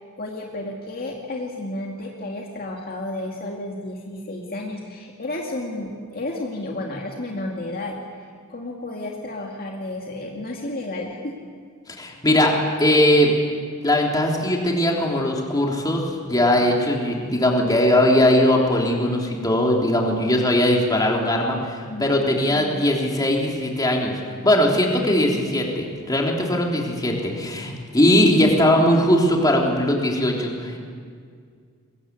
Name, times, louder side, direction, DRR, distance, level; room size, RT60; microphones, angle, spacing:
voice 1, 0.2-11.4 21.9-22.8, left 1 dB, 45° left, -1 dB, 2.3 m, -32 dB
voice 2, 11.9-12.5 12.8-13.3 13.8-30.8, left 1 dB, 20° left, -1 dB, 3.5 m, -20 dB
23.0 x 21.5 x 8.4 m, 2.1 s
head